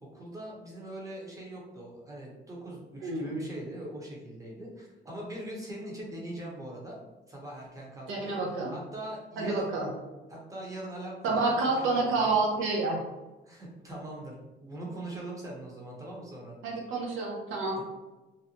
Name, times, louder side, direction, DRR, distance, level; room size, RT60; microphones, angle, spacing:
voice 1, 0.0-7.0 7.3-8.4 8.7-9.7 10.3-12.4 13.5-16.6 17.8-17.9, right 1 dB, 15° right, -3 dB, 0.8 m, -41 dB
voice 2, 3.0-3.4 8.1-8.7 9.4-9.9 11.2-13.0 16.6-17.8, right 3 dB, 90° right, -1 dB, 0.6 m, -28 dB
2.6 x 2.1 x 2.8 m, 1.1 s
cardioid pair, 90°, 20 cm